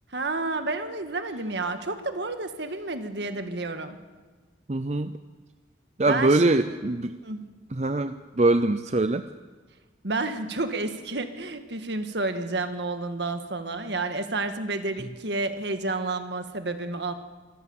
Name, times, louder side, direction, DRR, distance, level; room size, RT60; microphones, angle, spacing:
voice 1, 0.1-4.0 6.1-6.8 7.2-7.4 10.0-17.1, right 2 dB, 70° right, 8 dB, 1.7 m, -30 dB
voice 2, 4.7-5.1 6.0-7.2 7.7-9.2, right 2 dB, 35° right, 10 dB, 0.5 m, -23 dB
25.5 x 14.0 x 7.1 m, 1.4 s
head